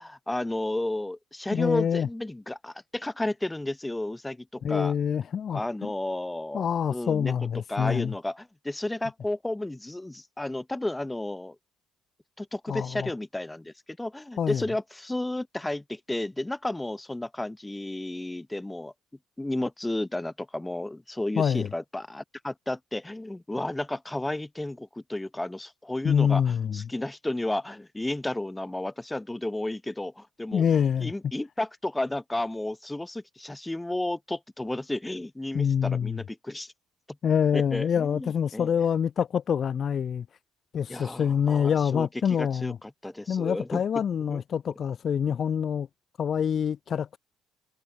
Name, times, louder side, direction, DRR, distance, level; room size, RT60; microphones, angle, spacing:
voice 1, 0.0-4.9 5.5-11.6 12.4-18.9 19.4-30.6 31.0-36.7 37.5-38.7 40.9-43.8 44.3-44.4, left 1 dB, 10° left, 6.1 m, -32 dB
voice 2, 1.5-2.1 4.6-5.6 6.5-8.1 12.7-13.1 14.4-14.6 21.4-21.7 26.0-26.8 30.5-31.1 35.5-36.2 37.2-40.2 40.7-42.8 43.3-45.9 46.2-47.2, left 8 dB, 50° left, 2.9 m, -26 dB
supercardioid pair, 70°, 0 cm